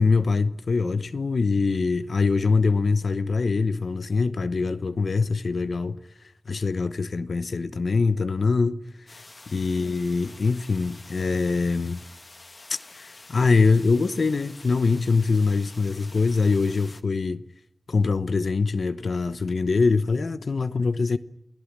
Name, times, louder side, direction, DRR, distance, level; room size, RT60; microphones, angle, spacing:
voice 1, 0.0-6.0 6.5-8.8 9.1-12.0 12.7-17.4 17.9-21.2, left 4 dB, 85° left, 1.0 m, -23 dB
sound 1, 9.1-17.0, left 2 dB, 55° left, 1.8 m, -48 dB
28.5 x 17.5 x 7.4 m
wide cardioid pair, 50°, 0 cm